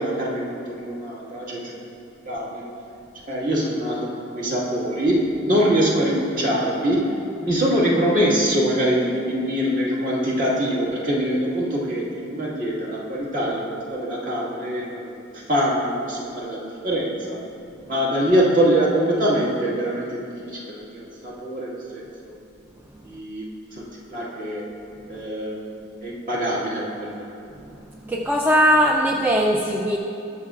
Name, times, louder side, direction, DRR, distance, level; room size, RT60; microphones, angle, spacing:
voice 1, 0.0-1.6 2.3-2.7 3.3-17.4 17.9-21.8 22.3-22.4 23.0-23.4 23.7-23.8 24.1-24.7 25.1-25.7 26.0-27.2, equal, 40° right, -5 dB, 1.8 m, -23 dB
voice 2, 28.0-30.0, equal, 10° right, 0 dB, 0.4 m, -19 dB
19.5 x 6.5 x 2.5 m, 2.7 s
head